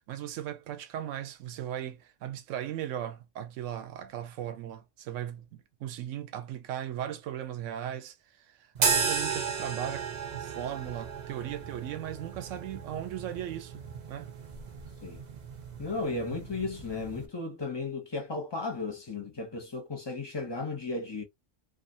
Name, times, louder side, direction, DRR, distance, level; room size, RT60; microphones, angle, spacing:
voice 1, 0.1-13.8 14.1-14.3, right 11 dB, 80° right, 0.9 m, -38 dB
sound 1, 8.7-17.3, right 5 dB, 45° right, 0.6 m, -34 dB
voice 2, 15.8-21.2, left 3 dB, 30° left, 0.5 m, -35 dB
2.5 x 2.5 x 2.6 m
omnidirectional pair, 1.3 m